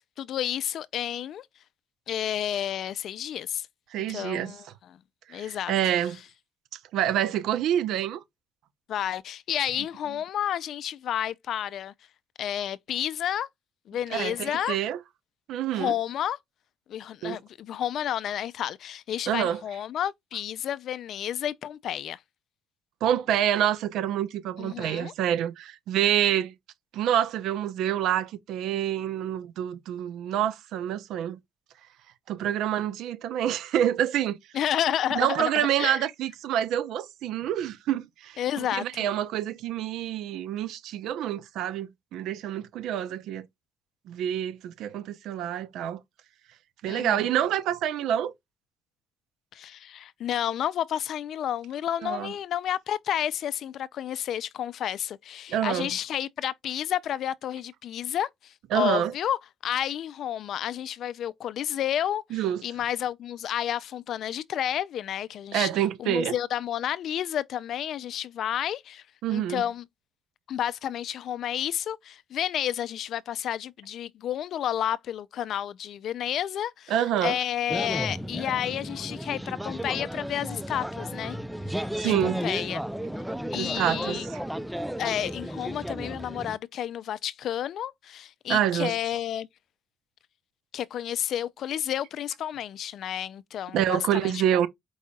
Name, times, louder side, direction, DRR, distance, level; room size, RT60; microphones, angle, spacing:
voice 1, 0.0-1.5 2.1-3.7 4.1-4.6 5.3-5.7 8.9-11.9 12.4-13.5 13.9-14.8 15.7-16.4 16.9-22.2 24.6-25.1 34.5-36.0 38.4-39.1 46.9-47.3 49.5-59.4 59.6-65.7 66.0-69.0 69.3-69.9 70.5-77.0 77.2-81.4 82.0-82.8 83.5-84.3 85.0-89.5 90.7-94.4, left 10 dB, 70° left, 0.4 m, -31 dB
voice 2, 3.9-4.5 5.3-6.2 6.9-8.2 14.1-15.0 15.5-15.9 17.2-17.4 19.3-19.6 23.0-26.5 26.9-31.4 32.3-34.4 35.1-38.4 38.7-43.5 44.1-46.0 46.8-48.3 52.0-52.3 55.5-55.9 58.7-59.1 62.3-62.6 65.5-66.4 69.2-69.6 76.9-77.4 82.0-82.4 83.6-84.4 88.5-89.0 93.7-94.7, right 11 dB, 85° right, 0.7 m, -27 dB
sound 1, 77.7-86.6, equal, 5° right, 0.5 m, -34 dB
4.8 x 4.1 x 2.3 m
cardioid pair, 90°, 0 cm